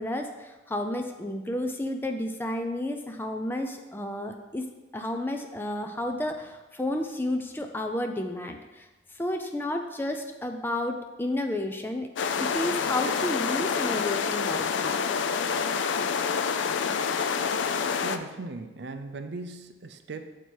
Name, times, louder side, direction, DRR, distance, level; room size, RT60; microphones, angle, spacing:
voice 1, 0.0-4.6 4.9-8.9 9.1-12.1 12.4-15.0, left 1 dB, 10° left, 4 dB, 0.4 m, -31 dB
sound 1, 12.2-18.2, left 6 dB, 80° left, 0.4 m, -27 dB
voice 2, 18.0-20.4, right 3 dB, 65° right, 8 dB, 0.5 m, -38 dB
6.7 x 4.6 x 4.5 m, 1.1 s
head